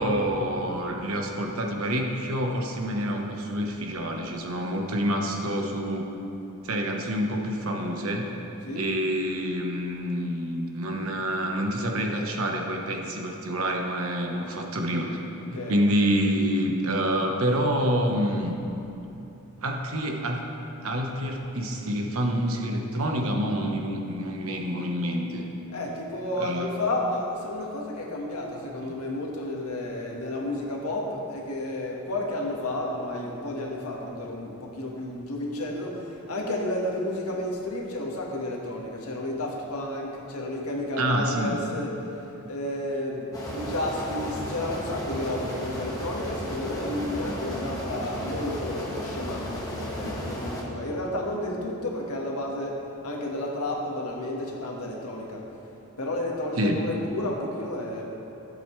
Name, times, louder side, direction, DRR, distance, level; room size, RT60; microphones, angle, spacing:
voice 1, 0.0-6.1 6.6-8.3 8.7-15.2 15.5-18.5 19.6-20.4 20.8-25.4 26.4-26.7 28.8-28.9 41.0-41.6 56.6-56.8, equal, 70° right, 2 dB, 1.1 m, -27 dB
voice 2, 15.4-15.8 25.7-36.0 36.3-41.9 42.5-52.8 53.0-55.4 56.0-58.0, left 1 dB, 90° left, -1 dB, 1.6 m, -31 dB
sound 1, 43.3-50.6, equal, 15° left, 1.5 m, -34 dB
15.5 x 8.0 x 3.2 m, 3.0 s
head